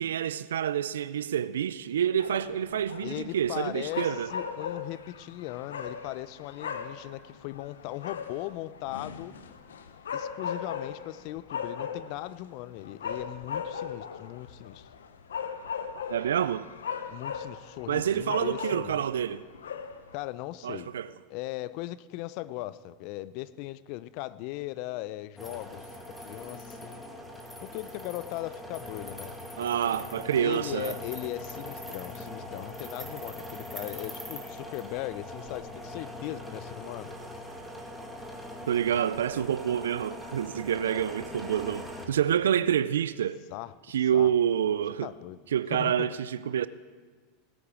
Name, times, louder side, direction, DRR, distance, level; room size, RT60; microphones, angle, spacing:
voice 1, 0.0-4.3 16.1-16.7 17.9-19.5 20.6-21.1 29.6-31.0 38.7-43.4 43.9-45.1 45.5-46.7, right 9 dB, 85° right, 0.3 m, -28 dB
sound 1, 2.2-20.3, left 6 dB, 85° left, 0.7 m, -39 dB
voice 2, 3.0-9.3 10.1-14.9 17.1-19.0 20.1-20.9 21.3-25.9 26.3-27.0 27.6-29.3 30.4-37.1 43.5-43.7 44.1-44.3 45.0-45.4 45.7-46.1, left 16 dB, 55° left, 0.5 m, -38 dB
sound 2, 25.4-42.1, left 1 dB, 5° left, 1.9 m, -41 dB
18.5 x 8.7 x 4.9 m
hypercardioid pair, 95°, 0 cm